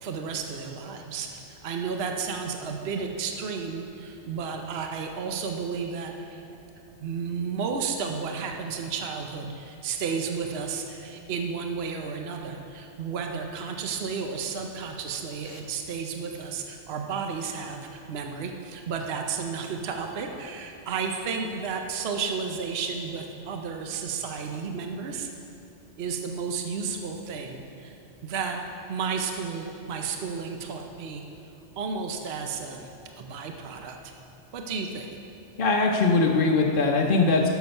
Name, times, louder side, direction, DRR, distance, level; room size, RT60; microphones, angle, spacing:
voice 1, 0.0-6.4 7.0-25.3 26.0-28.0 28.2-28.6 28.9-31.2 31.8-32.9 33.2-34.1 34.5-35.1, right 5 dB, 60° right, 3 dB, 0.9 m, -32 dB
voice 2, 35.6-37.5, left 3 dB, 50° left, -1 dB, 0.9 m, -21 dB
12.0 x 7.0 x 5.4 m, 2.9 s
omnidirectional pair, 1.3 m